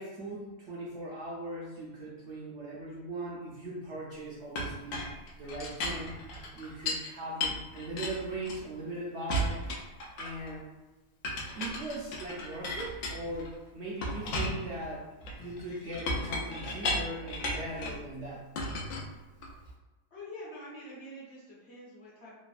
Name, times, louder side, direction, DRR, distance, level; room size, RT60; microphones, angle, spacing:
voice 1, 0.0-5.0 5.4-6.2 6.5-9.6 10.2-10.7 11.6-15.1 15.4-18.5, right 1 dB, 65° right, -5 dB, 0.7 m, -39 dB
Chink clink, 4.6-7.1 7.4-8.9 9.3-10.5 11.2-13.5 14.0-18.0 18.6-19.7, left 1 dB, 80° left, 1.0 m, -35 dB
voice 2, 20.1-22.3, left 1 dB, 55° left, -7 dB, 0.8 m, -46 dB
3.2 x 2.0 x 2.3 m, 1.1 s
omnidirectional pair, 1.6 m